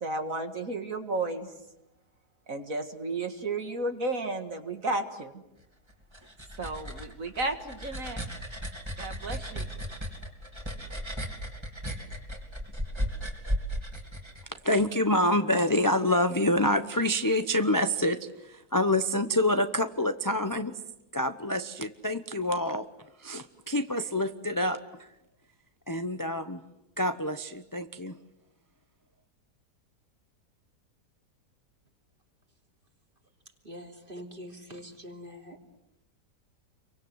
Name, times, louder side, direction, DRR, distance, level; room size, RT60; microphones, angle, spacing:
voice 1, 0.0-1.5 2.5-5.4 6.6-8.2 9.0-9.7, right 2 dB, 55° right, 6 dB, 2.2 m, -33 dB
sound 1, 5.9-14.9, equal, 15° right, 3.0 m, -36 dB
voice 2, 14.6-20.7 21.1-22.9 23.2-25.1 25.9-26.6 27.0-28.2, left 1 dB, 20° left, 9 dB, 0.6 m, -27 dB
voice 3, 33.6-35.6, equal, 30° right, 3 dB, 3.3 m, -44 dB
29.5 x 24.0 x 7.9 m, 0.89 s
omnidirectional pair, 1.8 m